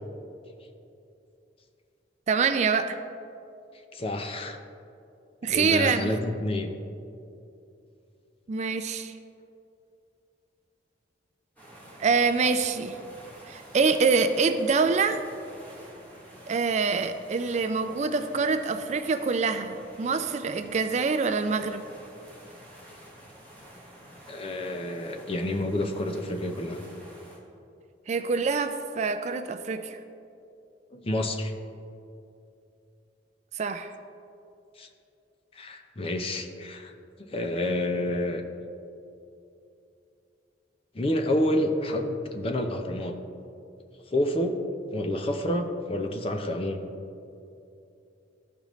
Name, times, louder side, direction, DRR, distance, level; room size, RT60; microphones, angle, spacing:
voice 1, 2.3-3.0 5.4-6.1 8.5-9.1 12.0-13.0 13.5-15.2 16.5-21.8 28.1-30.0 33.5-33.9, right 4 dB, 40° right, 9 dB, 0.3 m, -25 dB
voice 2, 3.9-4.6 5.5-6.7 24.3-26.8 30.9-31.5 34.8-34.9 35.6-36.9 37.3-38.4 40.9-43.1 44.1-44.6 44.9-46.8, left 1 dB, 30° left, 4 dB, 0.6 m, -29 dB
sound 1, 11.6-27.4, right 1 dB, 10° left, 1.3 m, -49 dB
13.5 x 5.2 x 3.1 m, 2.7 s
head